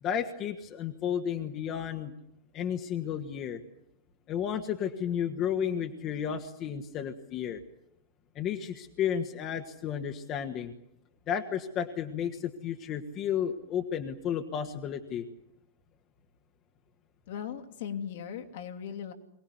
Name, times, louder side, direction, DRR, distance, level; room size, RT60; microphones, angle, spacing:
voice 1, 0.0-2.1 2.5-3.6 4.3-7.6 8.3-10.7 11.3-15.2, left 8 dB, 35° left, 5 dB, 1.7 m, -32 dB
voice 2, 17.3-19.1, left 8 dB, 55° left, 6 dB, 2.4 m, -38 dB
24.0 x 19.0 x 9.6 m, 0.79 s
figure-of-eight pair, 90°, 0 cm